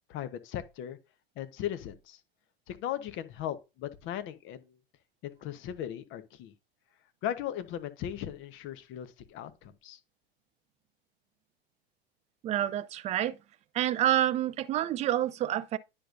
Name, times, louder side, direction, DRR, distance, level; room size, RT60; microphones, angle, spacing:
voice 1, 0.1-1.0 1.4-2.2 2.7-4.8 5.2-6.5 7.2-10.0, left 11 dB, 40° left, 1.0 m, -37 dB
voice 2, 12.4-13.4 13.7-15.8, right 12 dB, 20° right, 0.4 m, -28 dB
10.0 x 5.3 x 2.6 m
figure-of-eight pair, 90°, 31 cm